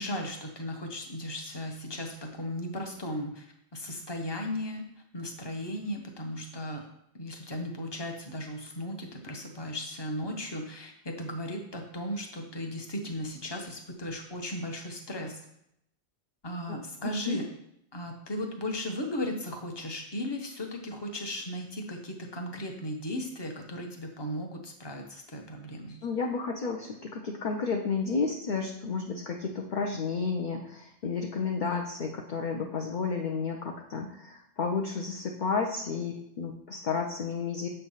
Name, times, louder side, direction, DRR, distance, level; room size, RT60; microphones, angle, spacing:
voice 1, 0.0-3.5 3.7-4.8 5.1-6.9 7.1-15.4 16.4-17.5 17.9-26.0, left 1 dB, 25° left, 3 dB, 0.9 m, -36 dB
voice 2, 17.0-17.4 26.0-37.7, left 4 dB, 50° left, 2 dB, 0.7 m, -32 dB
7.3 x 3.4 x 5.5 m, 0.77 s
omnidirectional pair, 1.2 m